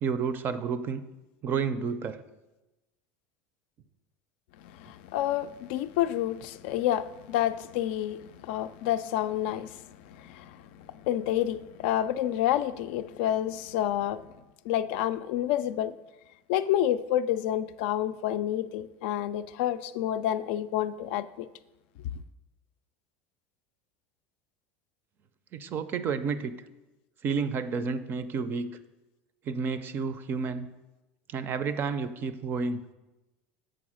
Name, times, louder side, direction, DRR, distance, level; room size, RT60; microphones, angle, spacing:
voice 1, 0.0-1.0 1.4-2.2 25.5-26.6 27.2-28.7 29.5-30.7 31.3-32.9, right 5 dB, 35° right, 0.4 m, -30 dB
voice 2, 4.6-14.2 14.6-16.0 16.5-21.5, left 12 dB, 70° left, 0.3 m, -29 dB
7.8 x 3.9 x 6.2 m
supercardioid pair, 140°, 6 cm